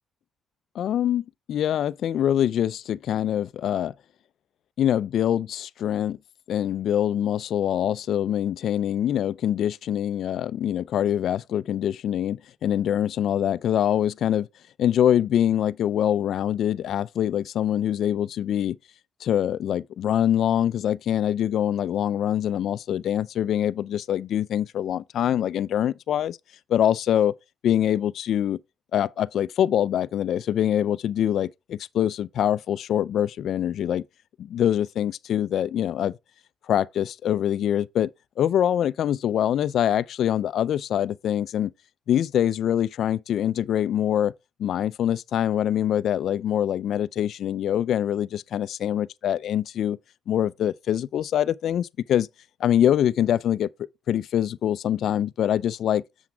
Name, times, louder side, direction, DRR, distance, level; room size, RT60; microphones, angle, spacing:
voice 1, 0.7-3.9 4.8-6.2 6.5-14.5 14.8-18.8 19.2-26.4 26.7-27.3 27.6-28.6 28.9-34.0 34.4-36.1 36.7-38.1 38.4-41.7 42.1-44.3 44.6-50.0 50.3-52.3 52.6-53.7 54.1-56.0, left 10 dB, 70° left, 0.5 m, -24 dB
7.7 x 7.1 x 3.5 m
cardioid pair, 90°, 0 cm